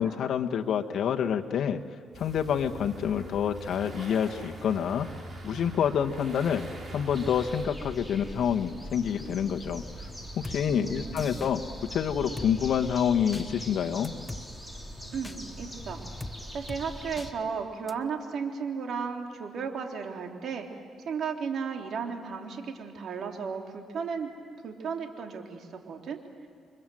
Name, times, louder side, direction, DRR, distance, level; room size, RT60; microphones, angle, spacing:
voice 1, 0.0-1.8 2.2-5.1 5.4-6.6 6.9-9.8 10.4-11.6 11.9-14.1, left 8 dB, 65° left, 5 dB, 1.6 m, -27 dB
sound 1, 2.1-7.7, right 1 dB, 30° right, 6.1 m, -43 dB
sound 2, 7.1-17.3, equal, ahead, 3.7 m, -42 dB
Drum kit, 10.4-10.6 11.2-11.5 12.4-12.5 13.3-13.5 14.0-14.4 15.2-15.4 16.2-16.4 16.7-16.8 17.2-17.3 17.9-18.0, left 2 dB, 15° left, 1.1 m, -40 dB
voice 2, 10.6-11.4 15.1-16.0 16.5-20.7 21.0-24.3 24.6-26.2, right 6 dB, 65° right, 2 dB, 3.5 m, -34 dB
29.5 x 24.5 x 7.9 m, 2.1 s
cardioid pair, 90°, 0 cm